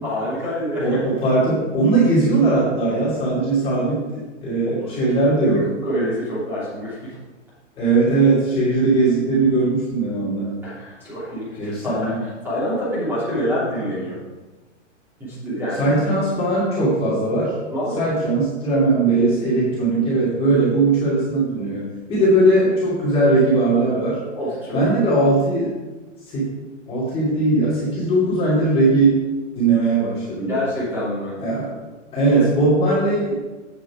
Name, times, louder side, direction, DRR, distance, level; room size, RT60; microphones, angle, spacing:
voice 1, 0.0-1.0 4.8-4.9 5.4-7.2 10.6-14.2 15.2-15.9 17.7-18.0 24.3-24.8 30.4-31.4 32.3-32.5, equal, 5° right, -10 dB, 2.9 m, -26 dB
voice 2, 0.8-5.6 7.8-10.5 11.6-12.2 15.8-17.5 18.0-24.2 24.7-25.7 26.3-26.5 26.9-29.2 29.5-30.5 31.4-31.8 32.1-33.3, right 2 dB, 15° left, -8 dB, 2.7 m, -19 dB
8.4 x 7.4 x 4.9 m, 1.2 s
hypercardioid pair, 160°, 38 cm